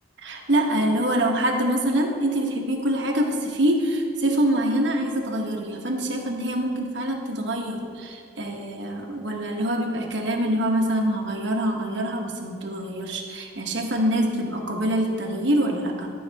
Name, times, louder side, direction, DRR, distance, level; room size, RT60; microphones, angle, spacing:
voice 1, 0.2-16.1, right 1 dB, 75° right, 1 dB, 1.2 m, -25 dB
12.0 x 5.8 x 3.4 m, 2.4 s
head